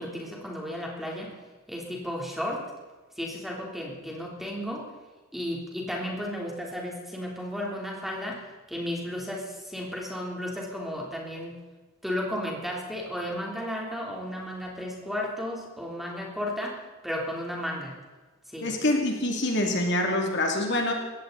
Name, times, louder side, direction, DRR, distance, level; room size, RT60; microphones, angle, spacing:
voice 1, 0.0-1.4 1.7-2.7 3.2-4.9 5.3-11.6 12.0-18.0 18.5-18.7, equal, ahead, -2 dB, 3.5 m, -34 dB
voice 2, 18.6-20.9, left 1 dB, 55° left, 1 dB, 2.7 m, -25 dB
20.0 x 16.0 x 4.1 m, 1.3 s
head